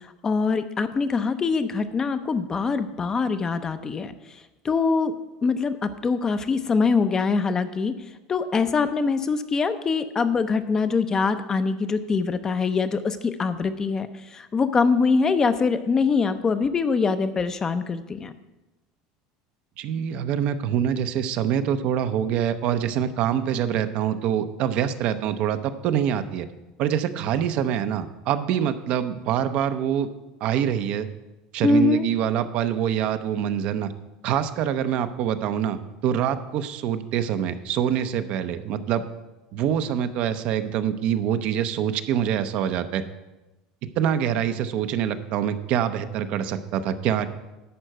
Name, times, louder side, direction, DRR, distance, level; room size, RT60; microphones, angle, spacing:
voice 1, 0.0-4.1 4.6-5.1 5.4-7.9 8.3-18.3 31.6-32.0, left 4 dB, 25° left, 10 dB, 0.6 m, -23 dB
voice 2, 19.8-26.5 26.8-30.1 30.4-31.1 31.5-33.9 34.2-39.0 39.5-43.0 44.0-47.3, right 9 dB, 55° right, 10 dB, 0.7 m, -25 dB
11.0 x 4.5 x 7.8 m, 1.0 s
supercardioid pair, 125°, 3 cm